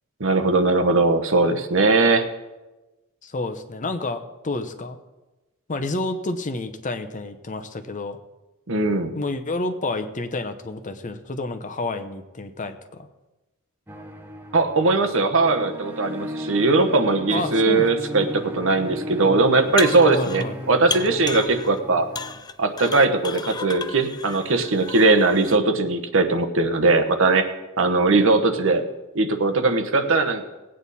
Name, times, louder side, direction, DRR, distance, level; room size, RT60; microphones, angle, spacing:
voice 1, 0.2-2.2 8.7-9.1 14.5-22.1 22.6-27.4 27.8-28.8 29.1-30.4, right 3 dB, 65° right, 7 dB, 1.1 m, -20 dB
voice 2, 3.2-5.0 5.7-8.2 9.1-13.1 17.3-18.3 20.1-20.6, left 2 dB, 35° left, 9 dB, 0.8 m, -30 dB
sound 1, 13.9-22.4, equal, 10° right, 0.9 m, -35 dB
sound 2, 19.5-20.5 20.9-21.8 22.1-25.6, left 5 dB, 20° left, 0.4 m, -33 dB
18.0 x 8.8 x 4.2 m, 1.1 s
head